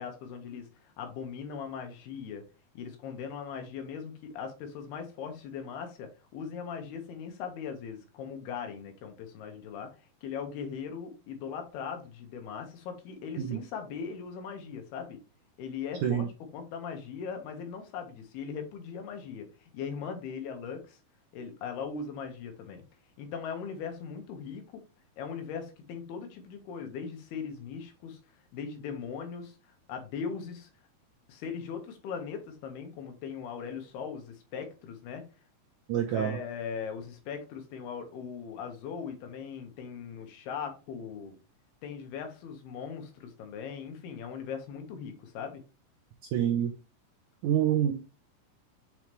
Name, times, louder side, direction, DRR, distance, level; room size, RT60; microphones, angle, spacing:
voice 1, 0.0-2.5 2.7-9.9 10.2-15.2 15.6-16.3 16.5-21.0 21.3-22.8 23.2-24.8 25.2-28.2 28.5-30.7 31.3-35.2 36.1-41.4 41.8-45.6, left 6 dB, 85° left, 3.3 m, -39 dB
voice 2, 35.9-36.4 46.3-46.7 47.4-47.9, right 10 dB, 85° right, 1.8 m, -26 dB
7.1 x 4.9 x 3.1 m
omnidirectional pair, 4.5 m